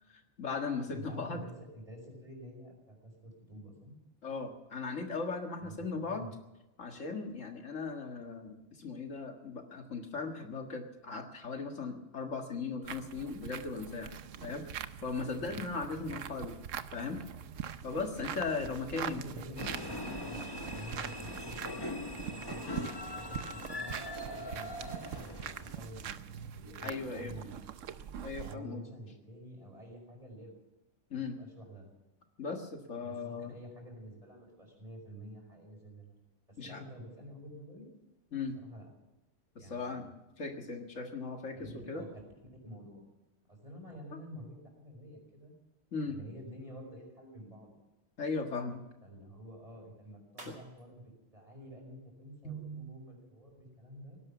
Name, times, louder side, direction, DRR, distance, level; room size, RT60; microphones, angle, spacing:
voice 1, 0.1-1.4 4.2-6.3 6.8-14.1 14.4-16.5 16.9-17.2 17.8-19.2 26.8-27.3 28.2-28.8 31.1-31.4 32.4-33.5 36.6-36.8 38.3-38.6 39.6-40.1 40.4-42.0 45.9-46.2 48.2-48.8 50.5-50.6 52.4-52.9, left 4 dB, 85° left, 4 dB, 2.1 m, -38 dB
voice 2, 0.9-3.9 5.6-6.3 15.4-15.6 15.9-16.2 18.6-21.9 22.2-23.9 24.2-27.5 28.4-30.5 31.1-31.9 33.0-37.9 38.6-38.9 39.6-40.1 41.5-42.1 42.6-43.1 43.5-45.5 46.0-47.8 49.0-54.2, equal, 30° right, 1 dB, 5.5 m, -49 dB
sound 1, 12.8-28.5, right 9 dB, 90° right, 1.1 m, -43 dB
sound 2, 19.6-25.9, left 1 dB, 20° left, 1.2 m, -41 dB
sound 3, 50.3-52.7, right 2 dB, 60° right, 3.1 m, -60 dB
18.0 x 11.0 x 7.2 m, 0.99 s
omnidirectional pair, 1.3 m